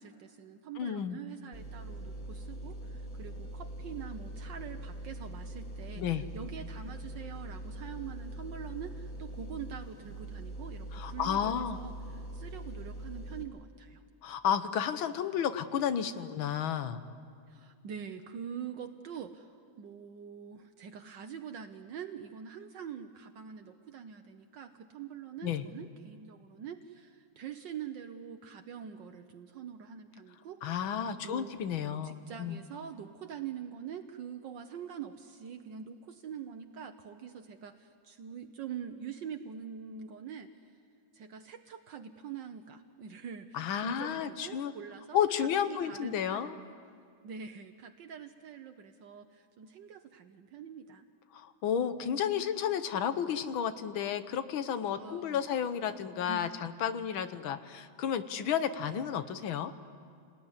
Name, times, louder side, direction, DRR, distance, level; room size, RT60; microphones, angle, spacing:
voice 1, 0.0-14.0 17.5-30.8 31.0-31.5 32.0-40.5 41.1-46.7 47.2-51.1 54.9-55.6 55.9-56.5, right 7 dB, 70° right, 6 dB, 1.5 m, -45 dB
voice 2, 0.8-1.2 6.0-6.2 10.9-11.8 14.2-17.0 25.4-25.7 30.6-32.6 43.5-44.7 45.1-46.6 51.3-59.7, left 8 dB, 85° left, 11 dB, 1.8 m, -32 dB
sound 1, 1.5-13.4, right 1 dB, 25° left, 3.1 m, -42 dB
27.5 x 19.5 x 9.8 m, 2.2 s
omnidirectional pair, 2.1 m